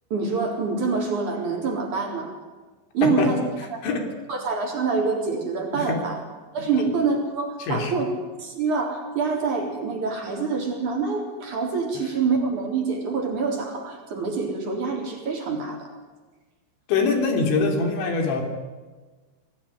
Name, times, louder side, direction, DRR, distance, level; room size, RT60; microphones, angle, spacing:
voice 1, 0.1-2.3 2.9-3.4 3.7-3.8 4.3-6.2 6.5-8.1 8.4-15.8, right 4 dB, 40° right, 1 dB, 4.9 m, -26 dB
voice 2, 3.0-3.3 3.8-4.1 5.7-6.0 6.7-6.9 7.6-7.9 16.9-18.4, left 4 dB, 70° left, 4 dB, 5.5 m, -23 dB
26.0 x 18.5 x 10.0 m, 1.3 s
omnidirectional pair, 5.5 m